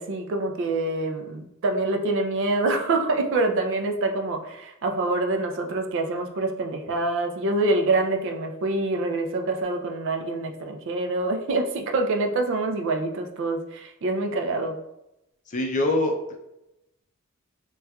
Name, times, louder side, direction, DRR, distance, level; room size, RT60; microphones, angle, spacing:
voice 1, 0.0-14.8, right 2 dB, 60° right, 4 dB, 0.4 m, -26 dB
voice 2, 15.5-16.4, left 1 dB, 35° left, 3 dB, 0.4 m, -24 dB
4.1 x 2.3 x 2.3 m, 0.87 s
head